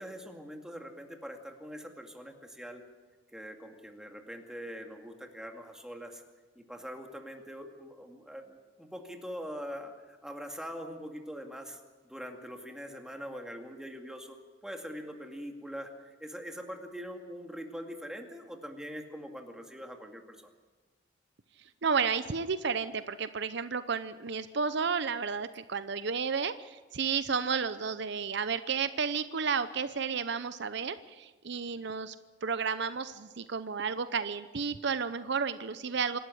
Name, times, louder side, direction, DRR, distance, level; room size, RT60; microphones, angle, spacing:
voice 1, 0.0-2.8 3.3-6.2 6.6-14.4 14.6-20.5 31.5-31.8, equal, 5° right, 3 dB, 2.2 m, -43 dB
voice 2, 21.8-32.1 32.4-36.2, right 5 dB, 65° right, 13 dB, 0.7 m, -32 dB
26.0 x 12.5 x 9.8 m, 1.2 s
head